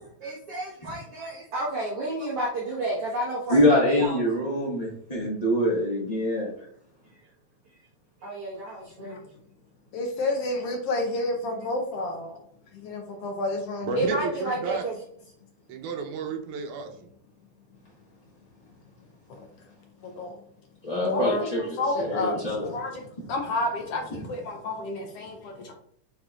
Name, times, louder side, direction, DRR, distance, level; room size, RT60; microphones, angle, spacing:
voice 1, 0.2-4.2 7.0-7.2 7.7-7.8 8.2-9.3 10.0-10.3 10.6-12.1 12.9-15.0, right 1 dB, 55° right, -6 dB, 2.1 m, -33 dB
voice 2, 3.5-6.5 20.8-22.7, left 1 dB, 30° left, -6 dB, 0.7 m, -24 dB
voice 3, 9.9-12.4 12.8-14.9 19.3-19.5 20.0-20.4 20.9-25.7, left 2 dB, 70° left, 3 dB, 1.5 m, -31 dB
voice 4, 13.8-14.8 15.7-17.1, right 5 dB, 80° right, 3 dB, 2.3 m, -32 dB
8.7 x 4.4 x 2.4 m, 0.66 s
omnidirectional pair, 3.5 m